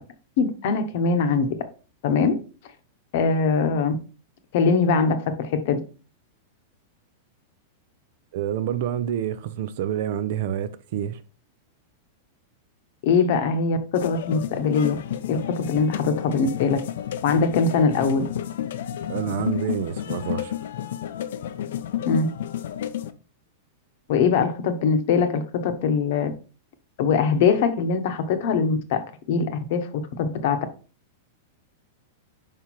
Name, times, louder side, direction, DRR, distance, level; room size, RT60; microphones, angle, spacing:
voice 1, 0.4-1.6 2.0-2.4 3.1-3.9 4.5-5.8 13.0-15.0 15.3-16.8 17.2-18.2 22.0-22.3 24.1-26.3 27.0-30.6, left 5 dB, 55° left, 0.9 m, -22 dB
voice 2, 8.3-11.2 19.1-20.5, right 10 dB, 55° right, 0.6 m, -28 dB
sound 1, 13.9-23.1, left 10 dB, 75° left, 0.5 m, -31 dB
5.0 x 4.4 x 4.5 m
supercardioid pair, 160°, 0 cm